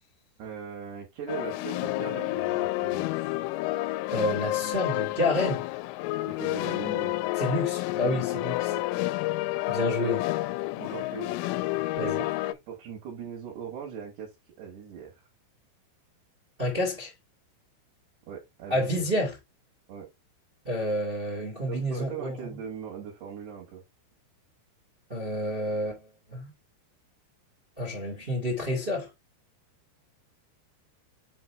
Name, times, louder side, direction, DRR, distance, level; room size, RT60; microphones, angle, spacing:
voice 1, 0.4-3.1 6.3-7.2 8.7-8.9 9.8-10.2 10.8-11.4 12.0-15.1 18.3-19.1 19.9-20.1 21.7-23.8, right 8 dB, 65° right, 3.7 m, -40 dB
sound 1, 1.3-12.5, left 18 dB, 90° left, 3.1 m, -30 dB
voice 2, 4.1-5.6 7.4-8.7 9.7-10.2 12.0-12.2 16.6-17.1 18.7-19.3 20.6-22.4 25.1-26.5 27.8-29.1, left 1 dB, 30° right, 0.9 m, -29 dB
7.4 x 4.4 x 3.3 m
omnidirectional pair, 5.6 m